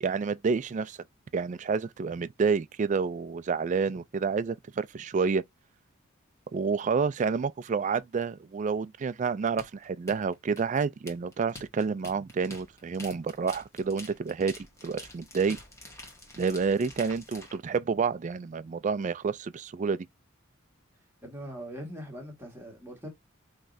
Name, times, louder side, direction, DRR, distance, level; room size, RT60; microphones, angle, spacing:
voice 1, 0.0-1.0 1.3-5.4 6.5-15.6 16.4-20.1, right 5 dB, 35° right, 0.3 m, -29 dB
sound 1, 9.6-17.6, left 2 dB, 15° left, 1.4 m, -47 dB
voice 2, 21.2-23.1, equal, 10° right, 1.7 m, -41 dB
5.7 x 3.1 x 2.5 m
head